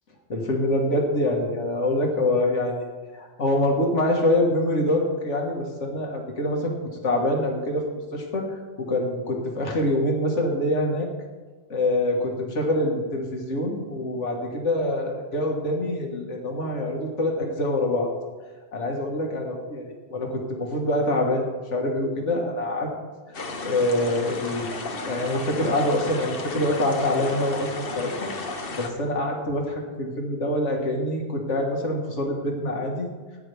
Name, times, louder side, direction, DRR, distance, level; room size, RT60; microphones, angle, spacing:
voice 1, 0.3-2.8 3.1-6.7 7.0-7.9 8.1-11.1 11.7-18.1 18.7-21.4 21.7-22.9 23.6-28.3 28.8-33.1, left 1 dB, 80° left, 0 dB, 2.0 m, -25 dB
sound 1, 23.3-28.9, left 3 dB, 55° left, 1.3 m, -33 dB
15.5 x 9.7 x 3.5 m, 1.4 s
omnidirectional pair, 1.2 m